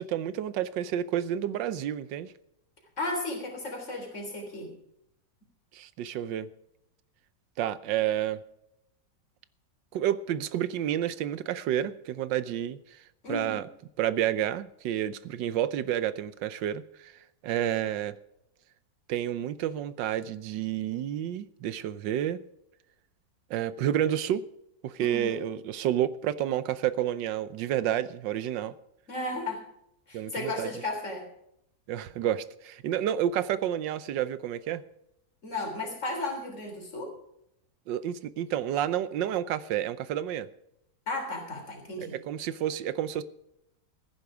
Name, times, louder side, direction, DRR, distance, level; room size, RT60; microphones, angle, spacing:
voice 1, 0.0-2.3 5.7-6.5 7.6-8.4 9.9-12.8 13.3-13.7 14.0-17.1 17.4-18.2 19.1-22.4 23.5-24.4 24.8-28.7 30.1-30.7 31.9-34.8 37.9-40.5 42.0-43.2, right 11 dB, 90° right, 16 dB, 1.4 m, -30 dB
voice 2, 3.0-4.7 13.2-13.6 25.0-25.4 29.1-29.6 30.1-31.2 35.4-37.1 41.1-42.2, left 2 dB, 40° left, 2 dB, 3.8 m, -34 dB
15.0 x 10.5 x 4.9 m, 0.79 s
omnidirectional pair, 1.9 m